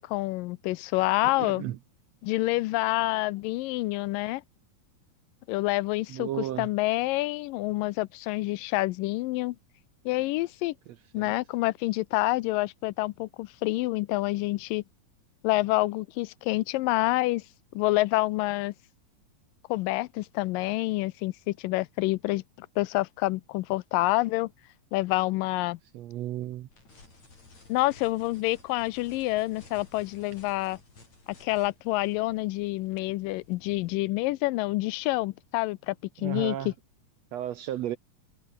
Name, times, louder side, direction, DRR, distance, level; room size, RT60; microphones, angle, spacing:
voice 1, 0.0-1.6 2.2-4.4 5.5-6.3 6.6-9.6 10.1-10.7 11.1-14.8 15.4-17.4 17.7-18.7 19.7-24.5 24.9-25.8 27.7-30.8 31.4-36.6, left 19 dB, 85° left, 2.3 m, -27 dB
voice 2, 1.2-1.8 6.1-6.7 10.9-11.3 25.9-26.7 36.2-36.7 37.3-38.0, right 12 dB, 70° right, 1.7 m, -34 dB
sound 1, 26.7-34.0, left 3 dB, 55° left, 9.1 m, -55 dB
omnidirectional pair, 3.9 m